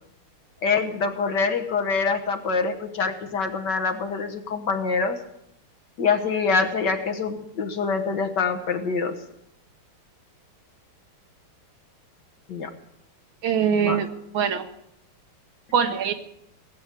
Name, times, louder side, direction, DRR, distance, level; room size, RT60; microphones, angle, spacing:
voice 1, 0.6-5.2 6.0-9.2 12.5-12.7 13.8-14.0, left 5 dB, 55° left, 5 dB, 1.8 m, -25 dB
voice 2, 13.4-14.7 15.7-16.1, right 7 dB, 70° right, 7 dB, 1.9 m, -23 dB
18.5 x 9.0 x 8.3 m, 0.79 s
omnidirectional pair, 2.4 m